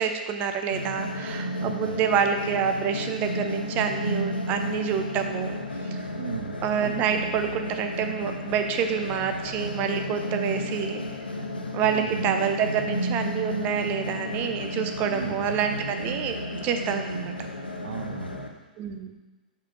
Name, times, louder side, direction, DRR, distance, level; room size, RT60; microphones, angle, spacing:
voice 1, 0.0-5.5 5.9-6.0 6.6-11.0 11.7-17.3 18.8-19.2, right 7 dB, 35° right, 6 dB, 0.7 m, -27 dB
sound 1, 0.7-18.5, left 1 dB, 90° left, 0.8 m, -32 dB
voice 2, 1.6-2.0 6.2-6.6 11.8-12.3 15.1-15.5 17.4-17.5 17.8-18.4, right 7 dB, 65° right, 4 dB, 0.7 m, -36 dB
6.7 x 5.1 x 4.6 m, 1.2 s
figure-of-eight pair, 110°, 5 cm